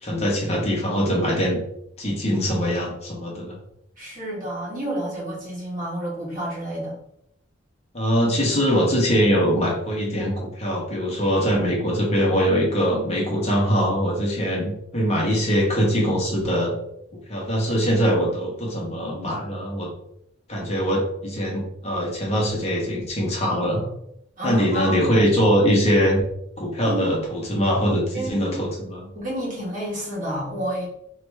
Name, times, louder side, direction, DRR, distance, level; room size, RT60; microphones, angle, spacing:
voice 1, 0.0-1.6 2.0-3.6 7.9-16.7 17.3-19.9 20.5-23.9 24.4-26.2 26.6-29.1, equal, 35° left, -3 dB, 1.2 m, -22 dB
voice 2, 4.0-7.0 24.4-25.1 26.9-27.1 28.1-28.5 29.2-30.9, right 1 dB, 45° right, -5 dB, 1.7 m, -29 dB
3.2 x 2.9 x 4.7 m, 0.76 s
head